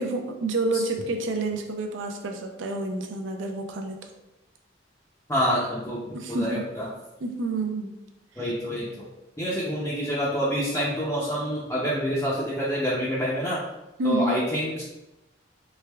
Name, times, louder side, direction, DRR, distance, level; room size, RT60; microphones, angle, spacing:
voice 1, 0.0-4.1 6.1-6.6 7.2-7.9 8.4-8.5 14.0-14.4, right 2 dB, 85° right, 3 dB, 0.5 m, -29 dB
voice 2, 5.3-6.0 6.3-6.9 8.4-9.0 9.4-13.6 14.0-14.8, equal, 10° left, -8 dB, 0.4 m, -27 dB
3.4 x 3.3 x 2.2 m, 0.96 s
head